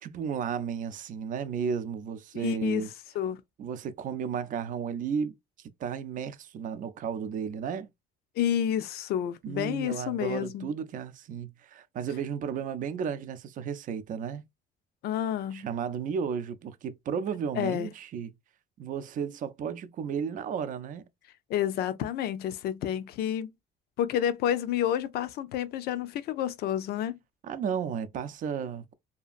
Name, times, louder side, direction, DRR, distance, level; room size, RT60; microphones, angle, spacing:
voice 1, 0.0-2.9 3.6-5.3 5.8-7.9 9.4-14.4 15.5-18.3 18.8-21.1 27.4-28.9, right 7 dB, 50° right, 0.5 m, -33 dB
voice 2, 2.3-2.9 3.2-3.4 8.4-10.7 15.0-15.7 17.6-17.9 21.5-23.5 24.0-27.2, left 10 dB, 70° left, 0.4 m, -29 dB
2.8 x 2.4 x 2.4 m
cardioid pair, 110°, 17 cm